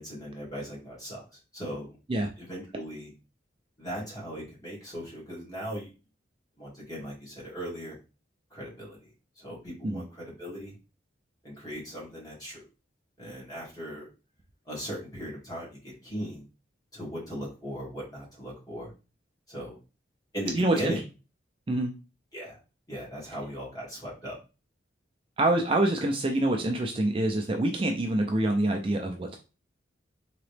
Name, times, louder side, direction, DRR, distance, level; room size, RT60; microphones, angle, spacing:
voice 1, 0.0-2.0 2.4-3.1 3.8-5.9 6.6-8.0 8.5-9.1 9.4-10.7 11.4-12.6 13.2-14.1 14.7-16.4 16.9-18.9 19.5-19.8 20.3-21.0 22.3-22.6 22.9-24.4, equal, 20° left, -5 dB, 2.0 m, -38 dB
voice 2, 20.5-20.9 21.7-21.9 25.4-29.4, right 1 dB, 30° right, 3 dB, 0.4 m, -26 dB
3.9 x 2.9 x 3.2 m, 0.32 s
head